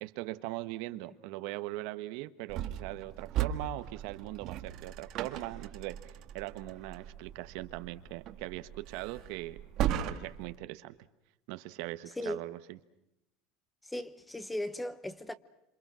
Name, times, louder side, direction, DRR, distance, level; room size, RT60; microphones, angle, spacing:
voice 1, 0.0-9.6 9.9-10.9 11.5-12.8, right 18 dB, 65° right, 1.2 m, -40 dB
sound 1, 2.5-10.5, right 10 dB, 45° right, 1.7 m, -38 dB
voice 2, 13.8-15.3, left 1 dB, 5° left, 0.9 m, -37 dB
27.5 x 27.5 x 6.3 m
cardioid pair, 160°, 0 cm